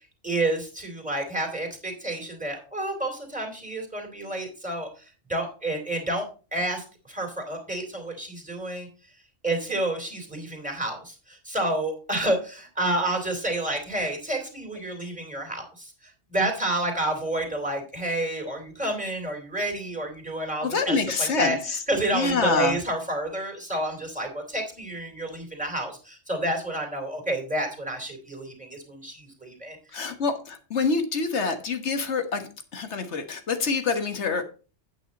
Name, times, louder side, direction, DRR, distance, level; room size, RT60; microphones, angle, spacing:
voice 1, 0.2-6.2 6.5-8.9 9.4-21.6 21.9-30.1, right 1 dB, 5° right, 2 dB, 3.2 m, -30 dB
voice 2, 20.6-21.8 22.1-22.8 29.9-34.5, left 4 dB, 65° left, 8 dB, 1.6 m, -26 dB
9.2 x 8.6 x 4.1 m, 0.36 s
omnidirectional pair, 1.3 m